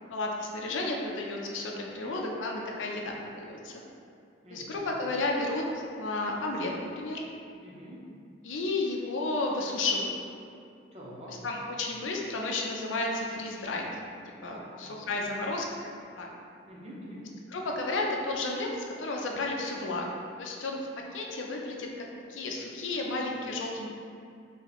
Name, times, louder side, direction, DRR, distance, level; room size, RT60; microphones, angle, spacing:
voice 1, 0.1-3.7 4.5-5.6 6.0-7.2 8.4-10.1 11.3-13.9 14.4-15.7 16.2-16.3 17.5-20.1 20.4-21.9 22.3-23.9, left 2 dB, 90° left, 0 dB, 0.5 m, -32 dB
voice 2, 4.4-4.8 7.6-8.0 10.9-11.4 14.5-15.2 16.7-17.2, equal, 35° right, -5 dB, 0.7 m, -46 dB
3.0 x 2.8 x 4.0 m, 2.4 s
head